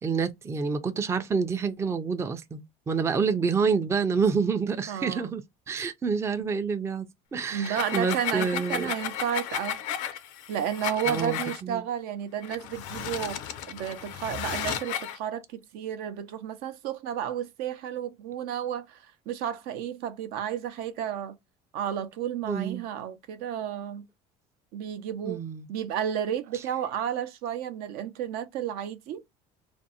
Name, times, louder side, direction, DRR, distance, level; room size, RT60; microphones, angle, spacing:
voice 1, 0.0-8.9 11.1-11.8 22.4-22.8 25.2-25.7 26.5-26.6, right 5 dB, 15° right, 0.3 m, -28 dB
voice 2, 4.9-5.3 7.5-9.8 10.5-13.4 13.7-15.4 15.7-19.0 19.3-21.4 21.7-24.0 24.7-25.4 25.7-29.2, right 9 dB, 70° right, 0.5 m, -32 dB
sound 1, 7.5-11.6 12.4-15.2, left 10 dB, 90° left, 0.4 m, -34 dB
2.5 x 2.1 x 2.7 m
supercardioid pair, 105°, 17 cm